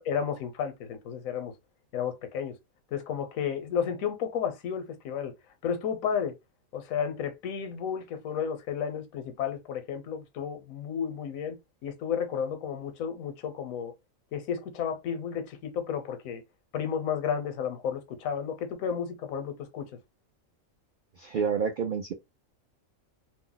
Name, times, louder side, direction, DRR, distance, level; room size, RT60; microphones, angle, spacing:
voice 1, 0.0-1.5 1.9-2.6 2.9-5.3 5.6-6.4 6.7-11.6 11.8-13.9 14.3-16.4 16.7-19.9, left 7 dB, 80° left, 1.1 m, -32 dB
voice 2, 21.2-22.1, right 6 dB, 70° right, 0.5 m, -29 dB
2.6 x 2.0 x 3.8 m
omnidirectional pair, 1.4 m